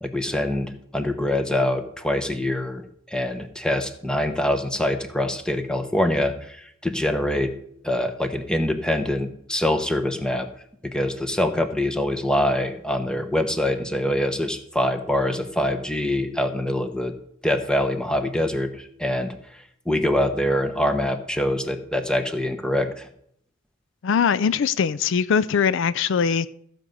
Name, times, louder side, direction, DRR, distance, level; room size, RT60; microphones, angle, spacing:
voice 1, 0.0-2.8 3.1-7.5 7.8-10.5 10.9-17.1 17.4-23.1, left 1 dB, 5° left, 1.0 m, -24 dB
voice 2, 24.0-26.5, left 6 dB, 65° left, 0.4 m, -21 dB
14.5 x 5.3 x 7.7 m
head